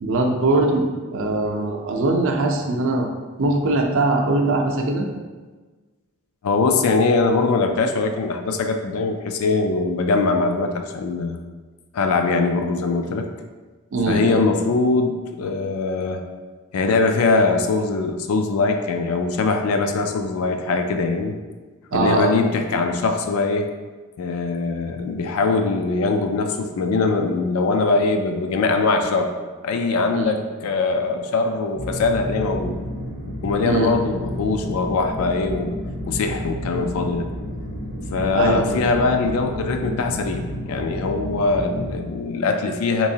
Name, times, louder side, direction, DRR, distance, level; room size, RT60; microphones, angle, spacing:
voice 1, 0.0-0.9 1.1-3.1 3.4-5.1 13.9-14.4 21.9-22.4 30.1-30.3 33.7-34.0 38.3-38.8, right 2 dB, 65° right, 2 dB, 0.5 m, -21 dB
voice 2, 6.4-11.4 11.9-13.3 14.1-16.2 16.7-21.4 21.9-23.7 24.2-29.3 29.6-32.8 33.4-35.8 36.1-37.3 38.1-43.1, left 3 dB, 80° left, 5 dB, 0.3 m, -22 dB
sound 1, 31.8-42.0, equal, 60° left, 1.0 m, -31 dB
3.5 x 3.0 x 2.7 m, 1.3 s
head